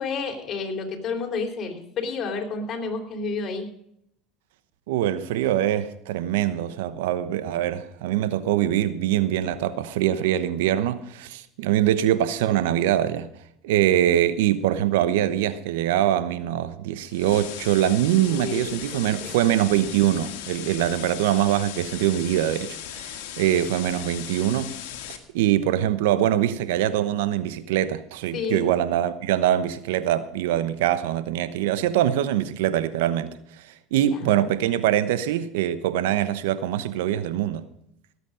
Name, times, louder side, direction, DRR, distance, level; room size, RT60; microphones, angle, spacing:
voice 1, 0.0-3.7 18.2-19.4 28.3-28.7 34.0-34.5, left 4 dB, 45° left, 4.0 m, -31 dB
voice 2, 4.9-13.3 13.6-24.8 25.3-33.3 33.9-37.7, right 12 dB, 80° right, 1.0 m, -23 dB
sound 1, 17.1-25.2, left 11 dB, 75° left, 1.9 m, -37 dB
18.0 x 8.3 x 5.1 m
hypercardioid pair, 80°, 0 cm